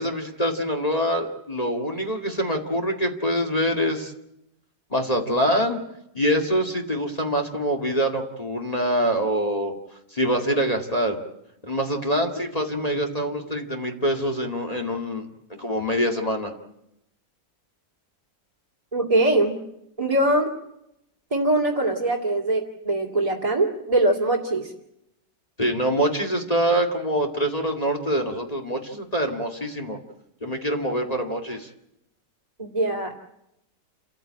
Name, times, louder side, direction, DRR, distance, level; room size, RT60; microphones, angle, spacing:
voice 1, 0.0-4.1 4.9-5.8 6.1-9.7 10.1-11.2 11.6-15.3 15.6-16.5 25.6-30.0 30.4-31.7, equal, 20° left, 3 dB, 2.2 m, -25 dB
voice 2, 18.9-19.6 20.0-20.6 21.3-24.7 32.6-33.2, right 1 dB, 20° right, -2 dB, 2.5 m, -22 dB
29.0 x 14.5 x 8.9 m, 0.81 s
omnidirectional pair, 1.9 m